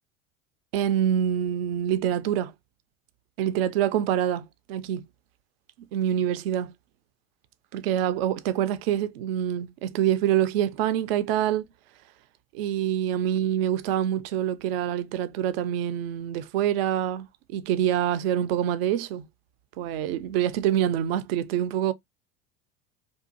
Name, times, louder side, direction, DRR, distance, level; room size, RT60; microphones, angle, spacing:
voice 1, 0.7-2.5 3.4-5.1 5.9-6.7 7.7-11.7 12.5-19.3 19.8-21.9, right 10 dB, 60° right, 0.4 m, -26 dB
2.6 x 2.3 x 2.6 m
figure-of-eight pair, 75°, 35 cm